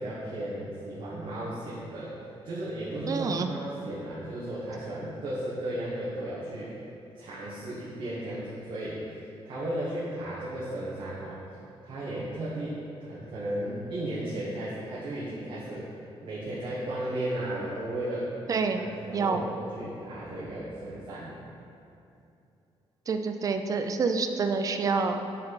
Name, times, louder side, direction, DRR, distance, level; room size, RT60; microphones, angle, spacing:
voice 1, 0.0-2.1 2.4-6.7 7.1-11.4 11.8-15.9 16.2-18.3 18.7-21.3, right 1 dB, 55° right, -8 dB, 1.1 m, -35 dB
voice 2, 3.1-3.5 18.5-18.8 19.1-19.4 23.1-25.2, right 4 dB, 35° right, 7 dB, 0.3 m, -27 dB
7.6 x 4.1 x 4.0 m, 2.7 s
wide cardioid pair, 180°, 10 cm